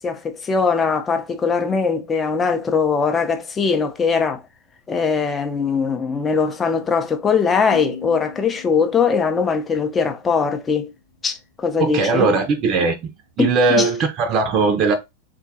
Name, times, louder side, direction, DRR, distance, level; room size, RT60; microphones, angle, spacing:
voice 1, 0.0-4.4 4.9-10.9 11.2-12.3 13.7-13.9, left 5 dB, 20° left, 0.5 m, -21 dB
sound 1, 7.7-11.1, left 7 dB, 90° left, 0.8 m, -39 dB
voice 2, 11.8-13.1 13.4-15.0, right 4 dB, 35° right, 0.5 m, -19 dB
3.6 x 2.2 x 2.7 m
figure-of-eight pair, 90°, 0 cm